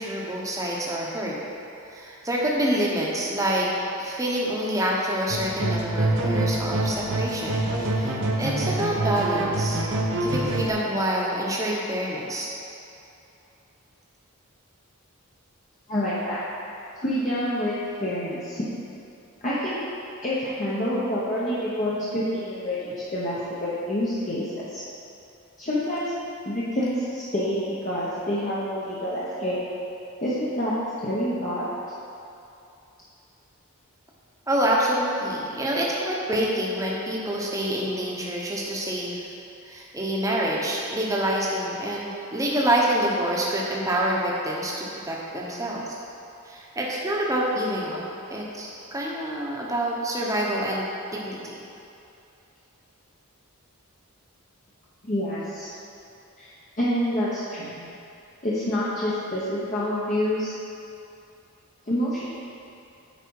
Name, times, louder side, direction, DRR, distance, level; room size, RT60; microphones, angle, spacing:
voice 1, 0.0-1.4 1.9-3.7 4.0-9.8 10.2-12.5 34.5-39.3 39.6-46.0 46.5-48.0 48.3-50.9 51.1-51.4, right 1 dB, 15° right, -4 dB, 1.0 m, -27 dB
sound 1, 5.3-10.7, right 1 dB, 55° right, 0.8 m, -26 dB
voice 2, 15.9-16.4 17.0-18.7 19.4-19.8 20.2-24.8 25.6-26.1 26.4-29.6 30.2-30.7 31.0-31.6 55.0-55.7 56.4-56.5 56.8-57.8 58.4-60.6 61.9-62.3, equal, 35° left, -9 dB, 1.0 m, -27 dB
9.3 x 4.9 x 4.7 m, 2.7 s
head